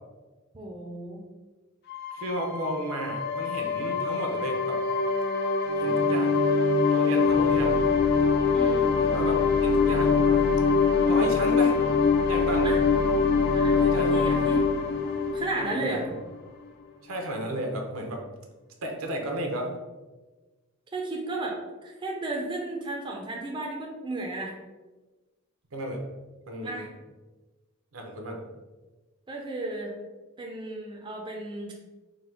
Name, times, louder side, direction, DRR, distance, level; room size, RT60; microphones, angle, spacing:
voice 1, 0.5-1.2 8.5-8.9 12.6-12.8 13.5-14.6 15.3-16.1 20.9-24.6 26.6-26.9 29.3-29.9 30.4-31.7, right 2 dB, 20° right, 0 dB, 0.4 m, -34 dB
sound 1, 1.9-16.3, left 4 dB, 50° left, 0.4 m, -23 dB
voice 2, 2.1-4.8 5.8-6.6 6.9-7.9 9.0-9.3 9.6-10.6 11.1-11.8 12.3-12.8 13.6-14.3 15.6-16.0 17.0-18.2 18.8-19.7 25.7-26.0 26.5-26.9 27.9-28.4, right 1 dB, 80° right, 2 dB, 0.7 m, -33 dB
3.8 x 2.2 x 4.4 m, 1.2 s
head